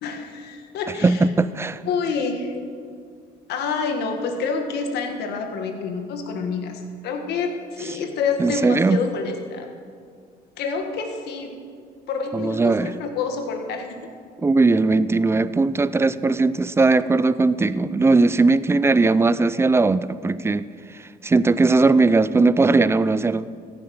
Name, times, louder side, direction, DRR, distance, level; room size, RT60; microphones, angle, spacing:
voice 1, 0.0-1.2 1.8-2.5 3.5-9.7 10.6-11.6 12.1-14.1, left 5 dB, 75° left, 5 dB, 1.6 m, -27 dB
voice 2, 1.0-1.8 8.4-9.0 12.3-12.9 14.4-20.7 21.2-23.5, right 3 dB, 15° right, 16 dB, 0.4 m, -19 dB
15.0 x 10.5 x 5.6 m, 2.2 s
cardioid pair, 110°, 17 cm